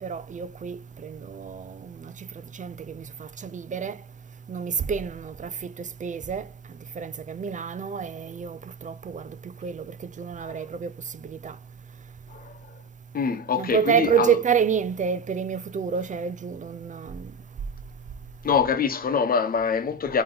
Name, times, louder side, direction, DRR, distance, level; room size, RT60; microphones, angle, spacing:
voice 1, 0.0-2.3 2.5-4.0 4.5-6.5 7.0-10.9 11.2-11.6 13.5-17.3, right 7 dB, 55° right, 0.5 m, -28 dB
voice 2, 10.4-10.7 12.3-12.8 13.1-14.4 18.4-20.2, left 6 dB, 70° left, 0.9 m, -25 dB
8.8 x 3.0 x 3.9 m
wide cardioid pair, 105°, 16 cm